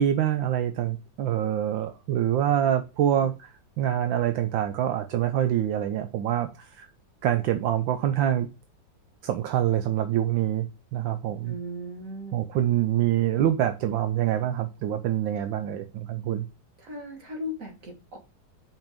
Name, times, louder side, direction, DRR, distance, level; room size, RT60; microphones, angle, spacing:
voice 1, 0.0-6.9 7.2-8.5 9.2-11.6 12.3-16.5, right 11 dB, 80° right, 1.4 m, -25 dB
voice 2, 11.4-12.5 16.8-18.2, left 1 dB, 45° right, 2.3 m, -37 dB
5.5 x 5.4 x 5.1 m
omnidirectional pair, 2.1 m